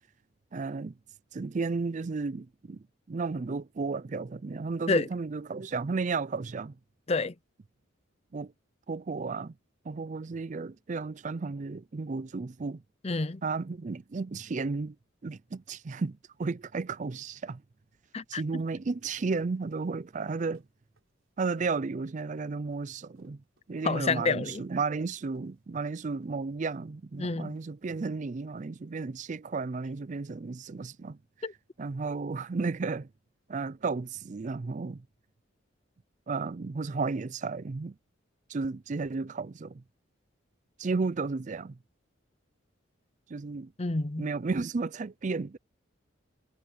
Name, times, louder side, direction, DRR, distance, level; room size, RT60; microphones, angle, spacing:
voice 1, 0.5-0.9 1.3-6.7 8.3-8.5 8.9-9.5 9.9-12.8 13.4-15.0 15.2-17.6 18.3-20.6 21.4-23.4 23.7-31.2 31.8-33.1 33.5-35.0 36.3-37.9 38.5-39.8 40.8-41.8 43.3-43.7 44.2-45.6, right 4 dB, 40° right, 0.4 m, -33 dB
voice 2, 13.0-13.4 18.1-18.6 23.8-24.6 27.2-27.6 31.4-31.5 43.8-44.3, left 3 dB, 30° left, 0.6 m, -29 dB
sound 1, 19.6-28.2 28.6-28.7, right 1 dB, 90° right, 4.0 m, -68 dB
head